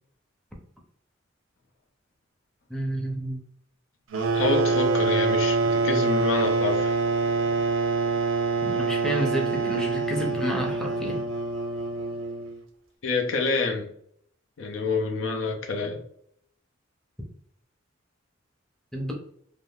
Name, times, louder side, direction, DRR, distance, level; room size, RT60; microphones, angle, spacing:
voice 1, 2.7-3.4 8.6-11.2 18.9-19.1, equal, 5° left, 0.6 m, -30 dB
sound 1, 4.1-12.6, right 3 dB, 70° right, 0.5 m, -25 dB
voice 2, 4.3-7.0 13.0-13.9 14.6-16.0, left 3 dB, 70° left, 0.5 m, -27 dB
3.4 x 2.5 x 2.3 m
head